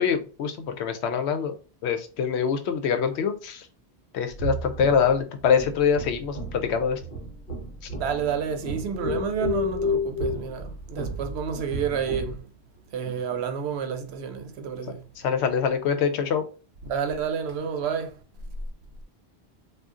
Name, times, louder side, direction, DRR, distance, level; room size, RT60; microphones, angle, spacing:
voice 1, 0.0-1.5 1.8-3.7 4.1-7.0 15.2-16.4, left 6 dB, 85° left, 0.9 m, -24 dB
sound 1, 4.3-12.4, left 2 dB, 55° left, 1.1 m, -32 dB
voice 2, 8.0-12.5 12.9-15.0 16.8-18.1, right 7 dB, 75° right, 0.8 m, -30 dB
2.6 x 2.3 x 3.5 m
omnidirectional pair, 1.1 m